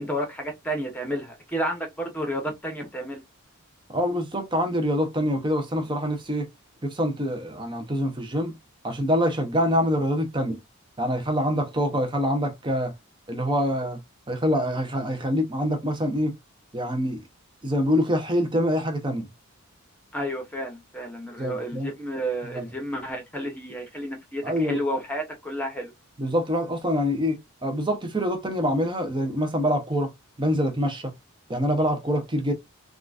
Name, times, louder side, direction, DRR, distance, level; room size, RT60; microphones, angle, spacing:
voice 1, 0.0-3.2 20.1-25.9, equal, 5° left, 1.0 m, -31 dB
voice 2, 3.9-6.5 6.8-8.5 8.8-10.6 11.0-12.9 13.3-14.0 14.3-16.3 16.7-17.2 17.6-19.3 21.4-21.9 22.5-22.7 24.4-24.8 26.2-30.1 30.4-31.1 31.5-32.5, equal, 20° right, 0.7 m, -25 dB
3.7 x 2.4 x 2.4 m
head